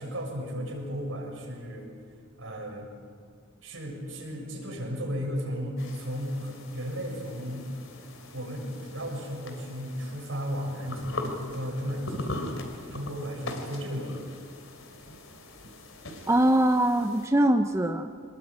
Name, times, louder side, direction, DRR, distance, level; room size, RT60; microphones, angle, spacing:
voice 1, 0.0-1.9 2.4-2.9 3.6-7.7 8.3-12.5 12.9-14.2, equal, 70° right, -1 dB, 6.9 m, -34 dB
sound 1, 5.8-17.3, left 2 dB, 70° left, 3.2 m, -41 dB
voice 2, 16.3-18.1, right 1 dB, 15° right, 7 dB, 0.7 m, -22 dB
25.5 x 20.5 x 8.8 m, 2.2 s
head